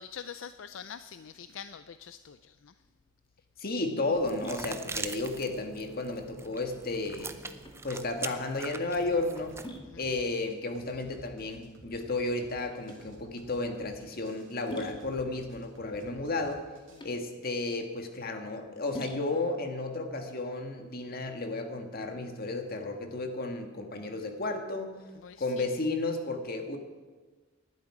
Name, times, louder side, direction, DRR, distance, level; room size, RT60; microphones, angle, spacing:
voice 1, 0.0-2.7 9.9-10.0 16.9-17.0 25.2-25.7, left 7 dB, 70° left, 12 dB, 0.5 m, -45 dB
sound 1, 2.8-21.3, equal, 25° left, 1.9 m, -49 dB
voice 2, 3.6-7.5 7.8-9.6 10.0-16.6 17.0-25.0 25.4-26.8, left 2 dB, 50° left, 5 dB, 1.7 m, -33 dB
sound 2, 4.1-9.8, right 3 dB, 15° right, 0.6 m, -42 dB
sound 3, 9.0-17.0, right 1 dB, 70° right, 2.9 m, -54 dB
19.0 x 11.5 x 4.9 m, 1.3 s
head